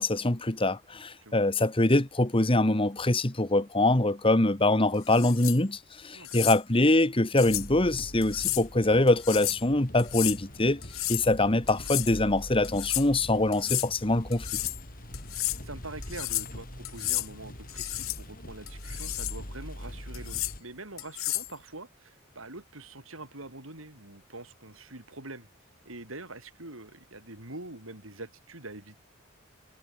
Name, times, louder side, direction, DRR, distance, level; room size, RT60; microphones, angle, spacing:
voice 1, 0.0-10.8 11.1-14.6, left 2 dB, 25° left, 1.6 m, -24 dB
sound 1, 5.1-5.6 6.2-6.6 7.4-7.7 8.2-8.6 9.1-9.6 10.0-10.4 10.8-11.3 11.7-12.2 12.6-13.1 13.5-13.9 14.3-14.8 15.1-15.6 16.0-16.5 16.8-17.3 17.7-18.2 18.7-19.4 20.1-20.5 21.0-21.5, left 18 dB, 90° left, 1.0 m, -32 dB
voice 2, 6.1-6.6 15.4-25.5 25.8-29.0, right 2 dB, 85° right, 6.3 m, -44 dB
sound 2, 7.4-20.6, equal, 45° left, 6.2 m, -43 dB
head